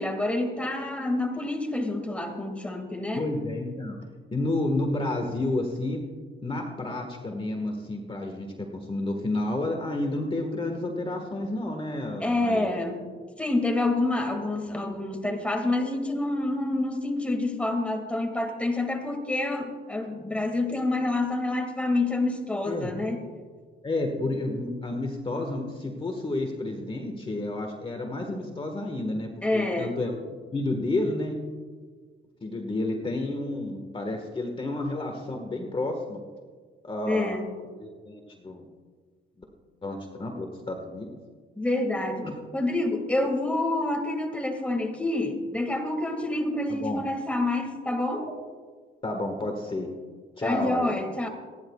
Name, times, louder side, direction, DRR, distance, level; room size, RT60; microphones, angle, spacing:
voice 1, 0.0-3.3 12.2-13.1 13.4-23.2 29.4-30.0 37.1-37.5 41.6-42.2 42.5-48.2 50.4-51.3, left 2 dB, 5° left, 4 dB, 2.1 m, -27 dB
voice 2, 3.1-4.0 4.3-6.0 6.4-12.7 22.6-22.9 23.8-30.2 30.5-31.4 32.4-36.2 36.8-37.4 37.8-38.6 39.8-41.1 42.2-42.3 46.7-47.0 48.1-48.3 49.0-49.9 50.4-50.9, left 2 dB, 25° left, 3 dB, 1.6 m, -30 dB
28.0 x 10.5 x 2.4 m, 1.6 s
cardioid pair, 90°, 20 cm